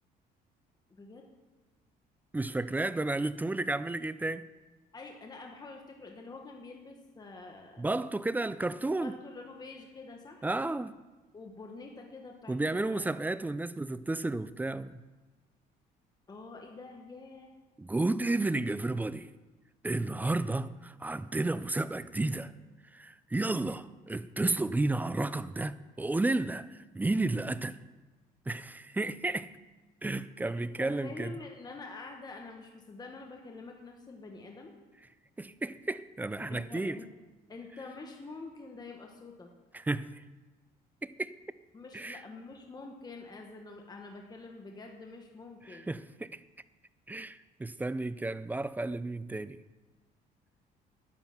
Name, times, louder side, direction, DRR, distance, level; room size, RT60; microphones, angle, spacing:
voice 1, 0.9-1.3 4.9-7.9 9.0-10.5 11.3-13.1 16.3-17.5 30.4-34.7 36.5-37.1 37.5-39.5 41.7-45.9, left 3 dB, 25° left, 1.4 m, -46 dB
voice 2, 2.3-4.5 7.8-9.2 10.4-10.9 12.5-15.0 17.8-19.3 19.8-22.5 22.9-27.8 28.5-29.5 30.0-31.3 35.4-37.0 39.7-40.2 41.0-41.4 41.9-42.2 45.7-46.4 47.1-49.6, right 2 dB, 10° right, 0.4 m, -32 dB
11.0 x 9.7 x 6.0 m
cardioid pair, 110°, 17 cm